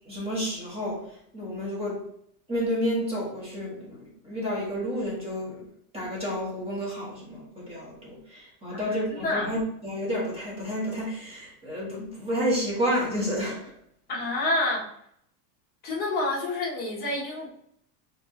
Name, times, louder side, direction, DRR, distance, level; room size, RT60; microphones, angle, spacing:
voice 1, 0.1-1.0 1.3-2.0 2.5-5.7 5.9-13.7, equal, 10° right, -5 dB, 1.3 m, -30 dB
voice 2, 8.7-9.5 14.1-14.8 15.8-17.5, left 2 dB, 20° left, -4 dB, 1.0 m, -28 dB
5.1 x 3.4 x 2.8 m, 0.71 s
supercardioid pair, 170°, 49 cm